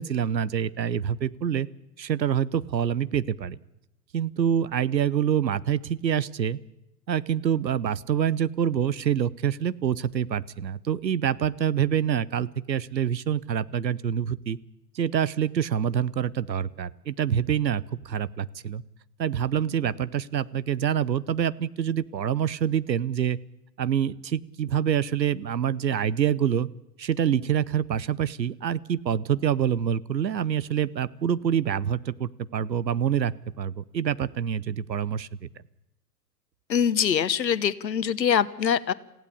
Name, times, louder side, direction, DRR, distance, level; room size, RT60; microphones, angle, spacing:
voice 1, 0.0-1.7 2.0-3.6 4.1-6.6 7.1-14.6 14.9-18.8 19.2-23.4 23.8-26.7 27.0-35.5, right 9 dB, 85° right, 19 dB, 0.9 m, -26 dB
voice 2, 36.7-38.9, left 8 dB, 80° left, 16 dB, 1.1 m, -23 dB
27.5 x 16.0 x 8.6 m, 0.91 s
hypercardioid pair, 110°, 50 cm